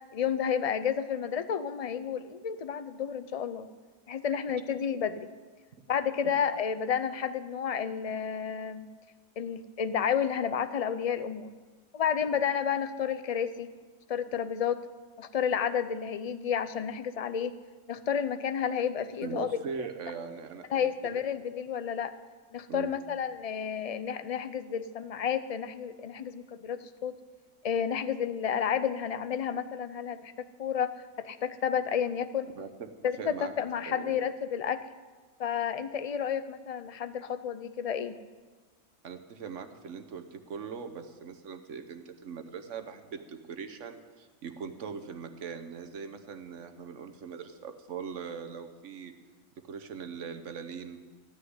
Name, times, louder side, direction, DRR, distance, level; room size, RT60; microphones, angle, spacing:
voice 1, 0.1-3.7 4.1-5.3 5.9-8.9 9.4-11.5 11.9-13.7 14.1-14.8 15.2-17.6 17.9-19.6 20.7-22.1 22.5-27.1 27.6-30.3 30.6-32.5 33.0-34.8 35.4-38.2, left 7 dB, 55° left, 12 dB, 0.4 m, -31 dB
voice 2, 19.2-20.9 22.7-23.0 32.5-32.9 33.2-33.5 33.8-34.2 39.0-49.1 49.7-51.0, right 6 dB, 65° right, 8 dB, 1.3 m, -41 dB
15.0 x 6.5 x 9.5 m, 1.4 s
omnidirectional pair, 1.4 m